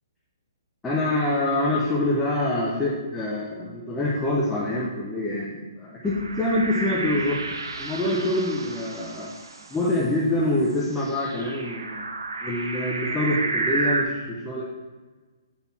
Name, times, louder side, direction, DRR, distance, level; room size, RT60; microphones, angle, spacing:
voice 1, 0.8-7.4 7.8-9.3 9.7-12.0 12.4-14.6, left 1 dB, 10° left, -7 dB, 0.9 m, -25 dB
sound 1, 6.0-10.0 10.9-14.0, right 3 dB, 80° right, 0.7 m, -31 dB
6.0 x 3.5 x 5.9 m, 1.3 s
hypercardioid pair, 135°, 2 cm